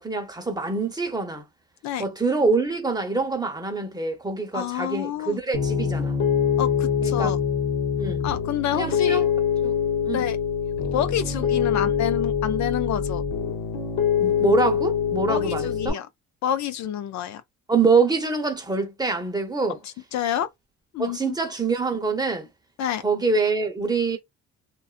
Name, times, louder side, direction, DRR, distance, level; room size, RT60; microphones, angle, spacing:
voice 1, 0.0-1.4 2.0-6.2 7.0-7.3 8.0-8.3 8.7-9.3 9.6-9.7 10.0-10.3 14.2-16.0 17.7-19.8 21.0-22.5 23.0-24.2, right 4 dB, 15° right, 0.8 m, -25 dB
voice 2, 4.5-5.4 6.6-7.4 8.2-9.3 10.1-10.4 10.9-13.2 15.3-16.1 16.4-17.4 20.1-20.5 20.9-21.3 22.8-23.0, left 10 dB, 65° left, 0.4 m, -28 dB
Piano, 5.5-15.9, left 7 dB, 85° left, 0.9 m, -24 dB
2.5 x 2.3 x 2.4 m
cardioid pair, 90°, 30 cm